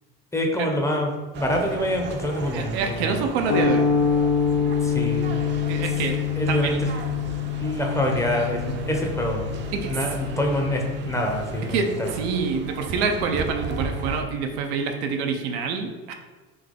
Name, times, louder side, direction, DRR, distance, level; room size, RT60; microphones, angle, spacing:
voice 1, 0.3-3.3 4.8-5.3 6.4-6.9 7.6-9.5 9.8-12.1, left 1 dB, 10° left, 1 dB, 0.6 m, -26 dB
sound 1, 1.3-14.2, right 3 dB, 35° right, 0.5 m, -36 dB
voice 2, 2.5-3.9 5.7-6.8 9.7-10.0 11.6-16.1, right 5 dB, 90° right, 4 dB, 0.6 m, -27 dB
sound 2, 3.5-11.9, left 6 dB, 60° left, 0.6 m, -26 dB
3.9 x 2.8 x 3.7 m, 1.3 s
supercardioid pair, 110°, 31 cm